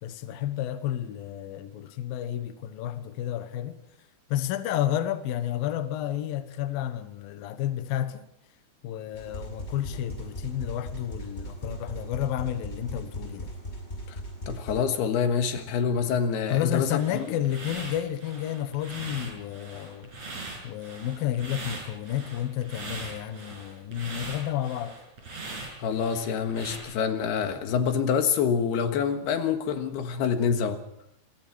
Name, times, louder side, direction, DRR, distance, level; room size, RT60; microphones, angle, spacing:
voice 1, 0.0-3.8 4.3-8.2 8.8-13.5 16.5-20.1 20.6-24.9, left 11 dB, 80° left, 2.0 m, -31 dB
sound 1, 9.1-14.8, equal, 10° left, 5.9 m, -38 dB
voice 2, 14.5-17.3 25.8-30.8, left 7 dB, 65° left, 3.1 m, -26 dB
sound 2, 17.0-26.8, right 3 dB, 35° right, 6.9 m, -41 dB
26.5 x 21.0 x 4.7 m
omnidirectional pair, 5.9 m